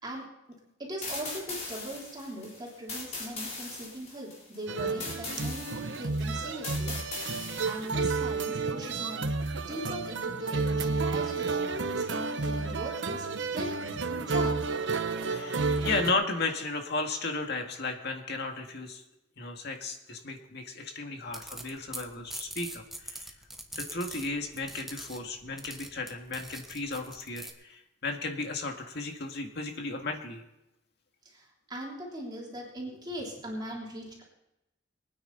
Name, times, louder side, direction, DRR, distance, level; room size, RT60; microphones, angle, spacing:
voice 1, 0.8-6.9 7.2-9.4 9.7-14.5 31.2-34.2, right 1 dB, 25° right, -3 dB, 3.4 m, -40 dB
sound 1, 1.0-8.2, left 3 dB, 35° left, 4.4 m, -40 dB
sound 2, 4.7-16.1, right 4 dB, 70° right, 0.9 m, -31 dB
voice 2, 15.3-19.0 19.4-23.3 23.8-30.4, left 3 dB, 60° left, 3 dB, 1.9 m, -34 dB
sound 3, 21.3-27.5, right 1 dB, ahead, 1.2 m, -44 dB
23.0 x 9.6 x 4.1 m, 0.91 s
head